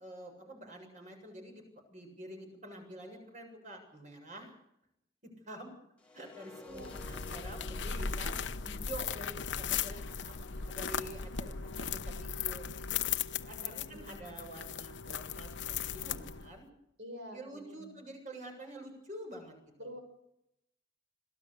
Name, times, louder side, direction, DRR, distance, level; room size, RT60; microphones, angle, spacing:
voice 1, 0.0-1.6 1.9-4.5 5.5-5.7 6.1-12.7 13.3-16.7 17.3-19.5 19.8-19.9, right 1 dB, 40° right, 3 dB, 7.5 m, -48 dB
sound 1, 6.0-12.0, left 2 dB, 5° left, 2.2 m, -55 dB
voice 2, 6.6-7.0 13.6-14.4 17.0-18.0 19.8-20.0, equal, 80° right, 5 dB, 6.7 m, -48 dB
sound 2, 6.7-16.6, left 7 dB, 80° left, 1.0 m, -37 dB
26.0 x 17.5 x 6.8 m, 0.81 s
head